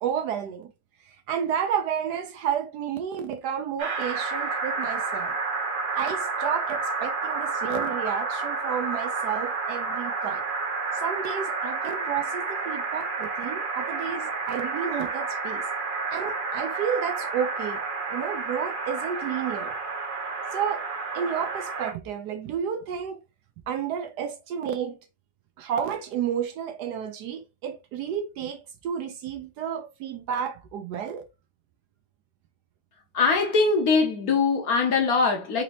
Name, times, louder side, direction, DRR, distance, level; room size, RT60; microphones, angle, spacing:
voice 1, 0.0-0.7 1.1-5.4 5.9-10.4 10.9-15.7 16.1-17.8 18.1-19.8 20.5-20.9 21.1-23.2 23.7-25.0 25.6-31.2, right 8 dB, 75° right, 1.0 m, -31 dB
sound 1, 3.8-21.9, right 4 dB, 50° right, 0.6 m, -30 dB
voice 2, 33.1-35.6, left 4 dB, 60° left, 1.2 m, -22 dB
4.0 x 2.7 x 2.9 m
omnidirectional pair, 2.0 m